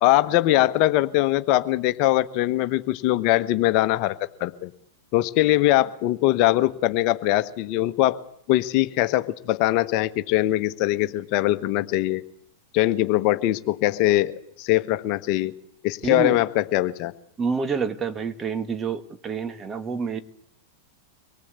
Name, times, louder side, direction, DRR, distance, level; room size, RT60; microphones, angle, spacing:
voice 1, 0.0-4.7 5.1-8.2 8.5-12.2 12.7-15.5 15.8-17.1, left 15 dB, 50° left, 1.3 m, -22 dB
voice 2, 16.0-16.4 17.4-20.2, right 5 dB, 25° right, 1.8 m, -28 dB
24.5 x 19.0 x 8.3 m
hypercardioid pair, 105°, 0 cm